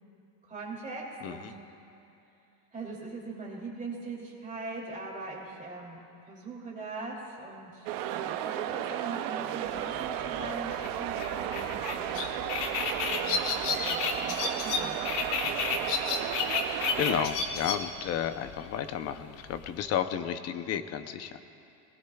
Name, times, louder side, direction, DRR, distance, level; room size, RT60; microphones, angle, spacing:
voice 1, 0.5-1.6 2.7-6.0 6.3-7.9 8.2-12.3 13.0-15.9, right 3 dB, 15° right, -3 dB, 2.7 m, -41 dB
voice 2, 1.2-1.5 16.7-21.4, left 9 dB, 35° left, 10 dB, 0.6 m, -32 dB
sound 1, 7.9-17.3, right 11 dB, 50° right, 0.6 m, -34 dB
sound 2, 9.7-19.8, left 5 dB, 80° left, 1.5 m, -32 dB
22.5 x 19.0 x 2.3 m, 2.7 s
cardioid pair, 155°, 46 cm